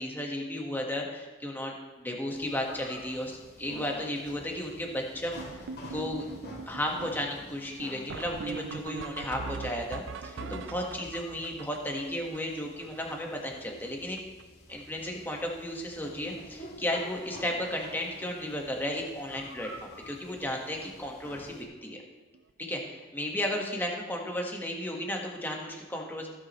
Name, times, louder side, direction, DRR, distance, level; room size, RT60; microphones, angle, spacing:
voice 1, 0.0-6.3 6.6-14.2 14.7-22.0 22.6-26.3, left 1 dB, 10° left, 0 dB, 1.5 m, -34 dB
sound 1, 2.3-21.6, left 1 dB, 50° left, 2.3 m, -49 dB
sound 2, 5.4-13.6 13.9-14.0 14.2-14.4 14.7-15.2 15.5-15.8 16.6-16.7 17.1-17.2 17.5-17.7 19.9-20.0 22.3-22.4, right 5 dB, 60° right, 0.4 m, -42 dB
16.0 x 8.3 x 3.1 m, 1.3 s
head